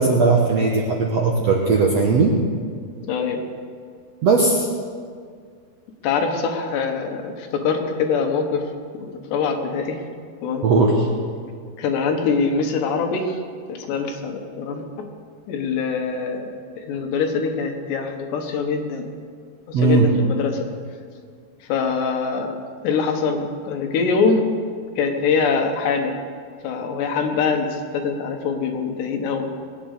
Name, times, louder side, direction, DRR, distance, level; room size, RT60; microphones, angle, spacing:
voice 1, 0.0-2.3 4.2-4.7 10.6-11.1 19.7-20.1, right 3 dB, 75° right, -1 dB, 1.5 m, -18 dB
voice 2, 3.1-3.4 6.0-8.6 8.9-10.0 10.4-10.7 11.8-13.4 13.7-15.1 15.5-16.5 16.8-19.1 19.7-20.6 21.7-22.6 22.8-24.6 25.0-26.2 26.6-29.5, left 5 dB, 90° left, 4 dB, 3.6 m, -23 dB
21.0 x 9.5 x 6.7 m, 2.1 s
omnidirectional pair, 4.7 m